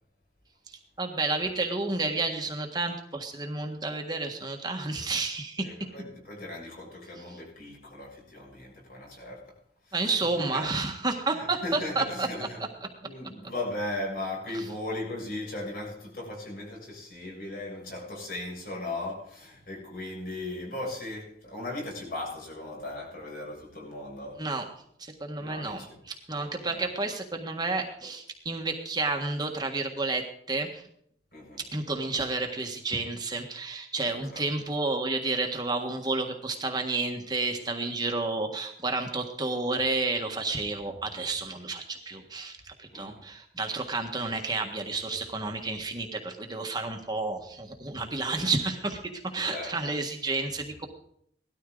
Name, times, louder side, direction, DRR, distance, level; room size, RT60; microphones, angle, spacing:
voice 1, 0.7-5.7 9.9-12.3 14.5-14.6 24.4-24.6 25.0-30.8 31.6-50.9, right 3 dB, 25° right, 1.6 m, -31 dB
voice 2, 5.6-9.6 9.9-10.7 11.3-12.6 13.0-24.4 25.4-26.0 26.3-26.8 31.3-31.6 34.1-34.5 42.9-43.2 49.4-49.9, left 2 dB, 55° left, 6.9 m, -38 dB
18.5 x 13.0 x 3.9 m
head